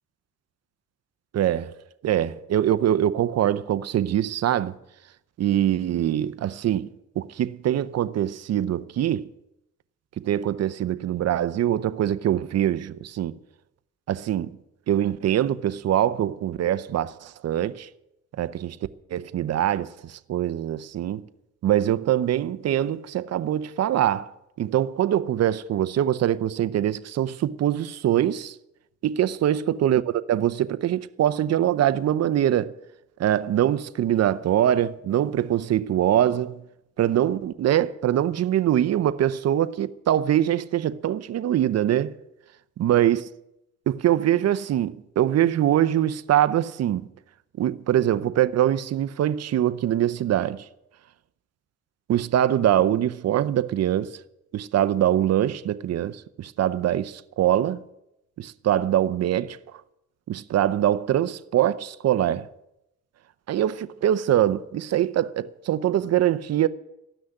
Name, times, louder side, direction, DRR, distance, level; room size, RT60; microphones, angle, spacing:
voice 1, 1.3-1.7 2.0-4.7 5.4-6.9 7.2-9.3 10.2-13.4 14.1-14.5 14.9-17.9 18.4-18.8 19.1-21.2 21.6-24.3 24.6-28.5 29.0-32.7 33.2-36.6 37.0-42.2 42.8-43.3 43.9-47.1 47.6-50.6 52.1-54.1 54.5-57.8 58.4-59.6 60.3-62.5 63.5-66.7, right 11 dB, 60° right, 0.7 m, -23 dB
14.0 x 6.2 x 9.9 m
cardioid pair, 90°, 30 cm